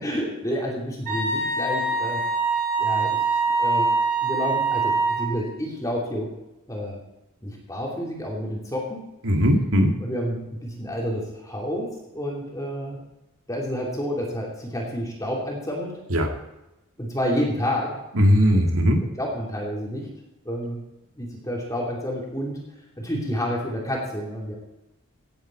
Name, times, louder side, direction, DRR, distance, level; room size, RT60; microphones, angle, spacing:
voice 1, 0.0-2.2 2.8-3.2 3.6-3.9 4.2-6.3 6.7-7.0 7.4-9.1 10.0-13.0 13.5-15.9 17.0-17.9 18.5-18.6 19.0-20.1 20.4-20.8 21.2-22.6 23.0-24.5, equal, 15° left, -2 dB, 2.8 m, -29 dB
Wind instrument woodwind instrument, 1.1-5.3, right 3 dB, 40° right, 5.4 m, -24 dB
voice 2, 9.2-9.9 16.1-16.3 18.1-19.0, equal, 85° right, 3 dB, 2.1 m, -19 dB
17.0 x 9.3 x 4.4 m, 0.97 s
head